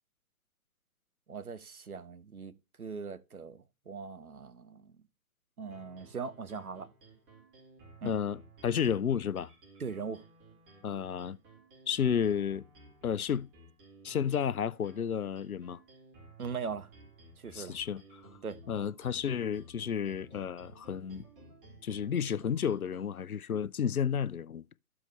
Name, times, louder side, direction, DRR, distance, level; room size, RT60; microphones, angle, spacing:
voice 1, 1.3-5.0 5.6-6.9 8.0-8.2 9.8-10.2 16.4-16.9 17.4-17.8 18.4-18.6, right 5 dB, 85° right, 1.0 m, -40 dB
sound 1, 5.7-23.1, right 1 dB, 40° right, 4.9 m, -56 dB
voice 2, 8.0-9.5 10.8-11.4 11.9-12.6 13.0-13.5 14.0-15.8 17.5-18.0 18.7-21.2 21.8-24.6, left 8 dB, 85° left, 0.6 m, -32 dB
13.5 x 4.9 x 3.2 m
figure-of-eight pair, 130°, 43 cm